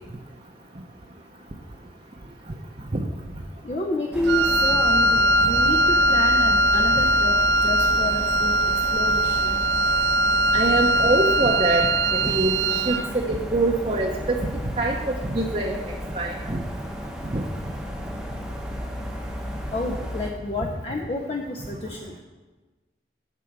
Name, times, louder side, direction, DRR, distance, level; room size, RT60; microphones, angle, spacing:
voice 1, 3.6-7.3 7.6-8.6 8.9-9.5 19.7-22.2, left 2 dB, 35° left, 1 dB, 0.6 m, -29 dB
sound 1, 4.1-20.3, equal, 5° right, 0.9 m, -33 dB
Wind instrument woodwind instrument, 4.2-13.1, right 1 dB, 75° right, 0.4 m, -21 dB
voice 2, 10.5-14.4 14.8-15.7 16.1-16.6 17.3-17.4, right 2 dB, 35° right, -1 dB, 0.8 m, -24 dB
11.5 x 4.6 x 7.3 m, 1.3 s
head